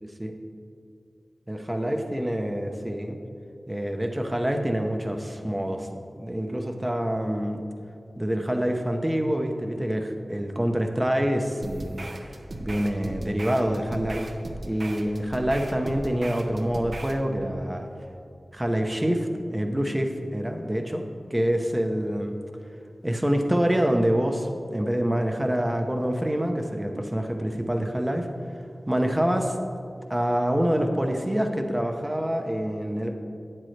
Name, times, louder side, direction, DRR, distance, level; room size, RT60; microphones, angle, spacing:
voice 1, 0.0-0.3 1.5-3.2 3.7-5.9 6.2-7.6 8.2-12.0 12.6-14.3 14.6-17.9 18.5-21.0 21.3-22.3 23.0-28.3 28.9-29.5 30.1-33.1, equal, 15° right, 4 dB, 0.8 m, -26 dB
sound 1, 11.6-17.2, right 2 dB, 65° right, 0.8 m, -38 dB
12.0 x 9.0 x 3.3 m, 2.5 s
wide cardioid pair, 65°, 0 cm